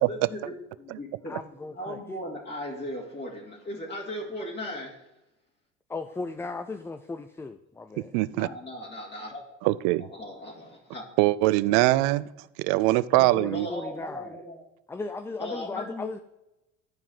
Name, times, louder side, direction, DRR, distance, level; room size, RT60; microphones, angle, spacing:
voice 1, 0.1-1.4 1.7-5.0 8.3-9.4 9.9-11.0 13.5-14.6 15.4-16.1, left 1 dB, 30° left, -3 dB, 2.6 m, -37 dB
voice 2, 1.3-2.0 5.9-8.1 13.2-14.3 14.9-16.2, left 3 dB, 5° left, 9 dB, 0.4 m, -36 dB
voice 3, 8.1-8.5 9.6-10.1 11.2-12.3 12.6-13.7, right 18 dB, 60° right, 19 dB, 0.5 m, -22 dB
11.0 x 4.8 x 5.2 m, 0.96 s
hypercardioid pair, 65°, 36 cm